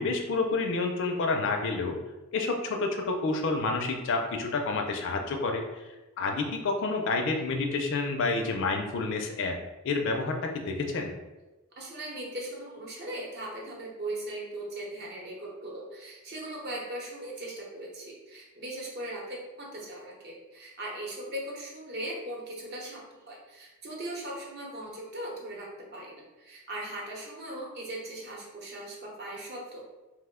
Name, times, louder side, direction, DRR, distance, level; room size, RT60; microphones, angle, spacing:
voice 1, 0.0-2.0 2.3-5.8 6.2-9.6 9.8-11.1, left 3 dB, 60° left, 3 dB, 0.4 m, -29 dB
voice 2, 11.8-29.9, right 1 dB, 50° right, -2 dB, 0.8 m, -39 dB
2.9 x 2.1 x 3.5 m, 1.1 s
head